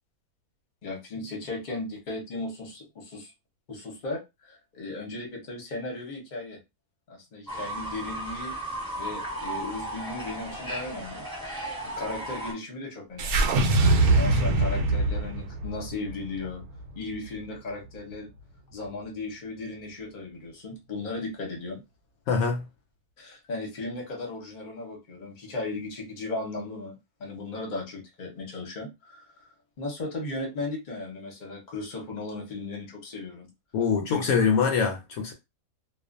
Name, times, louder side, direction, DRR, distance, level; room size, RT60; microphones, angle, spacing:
voice 1, 0.8-3.3 3.7-6.6 7.1-11.3 11.8-13.5 14.1-16.6 16.9-18.3 18.7-21.8 23.2-29.5 29.8-33.5 34.1-34.2, left 2 dB, 40° left, 0.9 m, -36 dB
Fowl / Bird, 7.5-12.5, right 1 dB, 5° left, 1.0 m, -35 dB
sound 1, 13.2-17.5, right 2 dB, 80° right, 1.1 m, -23 dB
voice 2, 22.3-22.6 33.7-35.3, left 6 dB, 75° left, 1.0 m, -24 dB
2.4 x 2.4 x 2.5 m
omnidirectional pair, 1.6 m